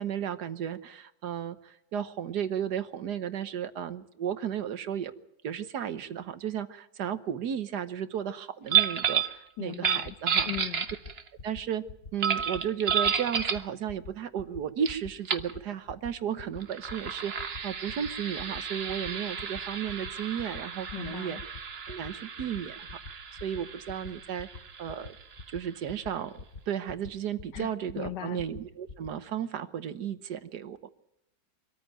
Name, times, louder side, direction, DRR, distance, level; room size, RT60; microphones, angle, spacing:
voice 1, 0.0-5.1 5.4-10.5 11.4-11.8 12.1-21.4 21.9-25.1 25.5-26.3 26.7-30.9, right 9 dB, 65° right, 11 dB, 1.5 m, -34 dB
sound 1, 8.7-9.4 9.7-11.3 12.2-13.7 14.8-14.9 15.2-15.5 16.6-25.9, right 7 dB, 40° right, 1.1 m, -31 dB
voice 2, 9.6-10.2 10.4-10.9 20.9-21.4 27.5-28.4, left 13 dB, 75° left, 12 dB, 1.6 m, -38 dB
sound 2, 10.0-10.1 10.4-10.6 10.9-11.1 11.4-11.6 11.9-12.1 12.4-12.6 12.9-13.1 13.4-13.6 13.9-14.1 14.4-14.6 14.9-15.1 15.4-15.6 15.9-16.1 16.4-16.6 16.9-17.1 17.4-17.6 17.9-18.1 18.4-18.6 18.9-19.1 19.4-19.6 19.9-20.1 20.4-20.6 20.9-21.1 21.4-21.6 21.9-22.1 22.4-22.6 22.9-23.1 23.4-23.6 23.9-24.1 24.4-24.6 24.9-25.1 25.4-25.6 25.9-26.1 26.4-26.6 26.9-27.1 27.4-27.6 27.9-28.1 28.4-28.6 28.9-29.1, left 4 dB, 40° left, 1.0 m, -44 dB
24.5 x 14.0 x 9.1 m, 0.81 s
omnidirectional pair, 1.9 m